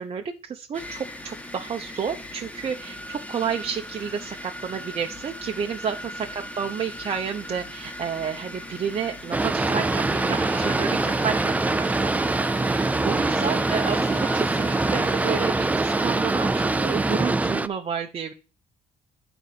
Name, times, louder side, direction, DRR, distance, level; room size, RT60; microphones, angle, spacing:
voice 1, 0.0-18.3, right 7 dB, 35° right, 3 dB, 0.7 m, -31 dB
sound 1, 0.7-17.1, equal, 10° left, 0.8 m, -39 dB
Boat Water vehicle, 9.3-17.7, right 2 dB, 10° right, 0.3 m, -23 dB
8.8 x 4.0 x 6.7 m, 0.34 s
cardioid pair, 110°, 17 cm